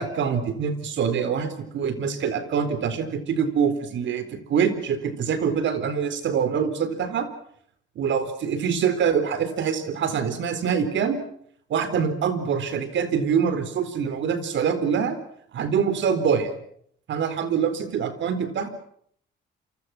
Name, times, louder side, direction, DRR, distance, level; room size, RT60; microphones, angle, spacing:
voice 1, 0.0-7.3 8.0-11.2 11.7-15.2 15.5-16.5 17.1-18.7, right 7 dB, 70° right, 12 dB, 4.3 m, -25 dB
28.5 x 24.5 x 6.1 m, 0.64 s
cardioid pair, 90°, 20 cm